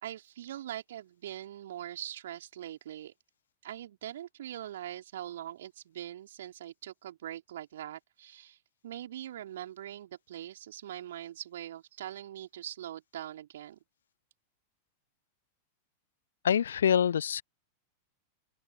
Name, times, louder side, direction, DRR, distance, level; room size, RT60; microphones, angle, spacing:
voice 1, 0.0-3.1 3.6-8.6 8.8-13.8, right 12 dB, 60° right, 4.1 m, -42 dB
voice 2, 16.4-17.4, left 8 dB, 65° left, 0.6 m, -25 dB
open air
figure-of-eight pair, 90°, 0 cm